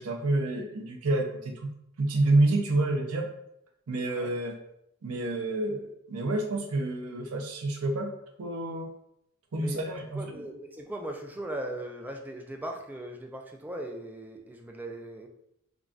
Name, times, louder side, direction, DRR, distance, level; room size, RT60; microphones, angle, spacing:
voice 1, 0.0-1.7 2.0-3.3 3.9-4.5 5.0-8.1 8.4-8.9 9.5-10.4, right 2 dB, 70° right, 3 dB, 0.6 m, -28 dB
voice 2, 10.1-15.3, right 1 dB, 10° right, 2 dB, 0.3 m, -39 dB
3.9 x 2.3 x 2.4 m, 0.77 s
head